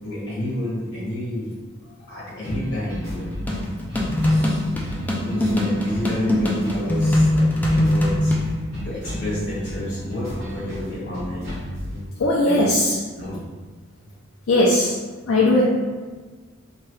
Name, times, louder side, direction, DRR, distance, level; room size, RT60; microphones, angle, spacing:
voice 1, 0.0-1.6 2.1-3.4 4.3-4.8 5.1-8.3 8.8-11.6 12.4-12.7 13.1-13.5, left 1 dB, 60° left, -8 dB, 1.4 m, -30 dB
sound 1, 2.4-12.0, equal, 50° right, 1.4 m, -33 dB
sound 2, 3.5-8.5, left 1 dB, 10° left, 0.3 m, -21 dB
voice 2, 12.2-13.0 14.5-14.9 15.3-15.6, left 1 dB, 80° left, -5 dB, 0.4 m, -18 dB
2.9 x 2.2 x 3.1 m, 1.4 s
head